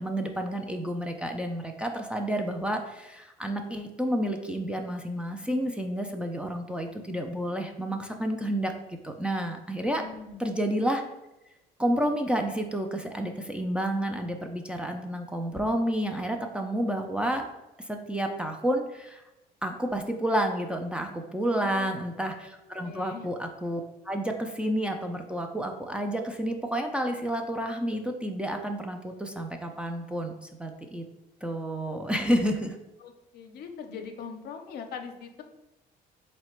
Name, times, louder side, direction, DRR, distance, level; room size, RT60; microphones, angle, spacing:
voice 1, 0.0-8.7 9.0-10.0 10.4-11.0 11.8-17.5 17.9-19.2 19.6-31.0 31.4-32.8, right 1 dB, 5° right, 2 dB, 0.3 m, -30 dB
voice 2, 9.9-10.5 21.5-22.5 22.8-23.3 33.0-35.4, left 6 dB, 70° left, 6 dB, 0.6 m, -42 dB
3.9 x 2.1 x 4.3 m, 0.97 s
cardioid pair, 110°, 17 cm